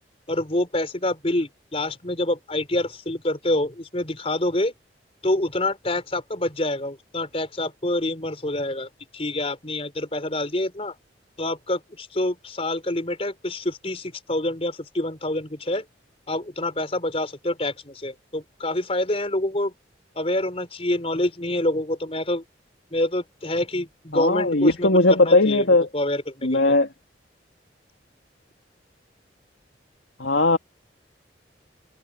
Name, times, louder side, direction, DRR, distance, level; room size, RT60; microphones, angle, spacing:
voice 1, 0.3-4.7 5.2-10.9 11.4-15.8 16.3-19.7 20.2-22.4 22.9-26.7, left 1 dB, 30° left, 4.2 m, -27 dB
voice 2, 24.1-25.9 26.4-26.9 30.2-30.6, left 2 dB, 80° left, 2.4 m, -18 dB
head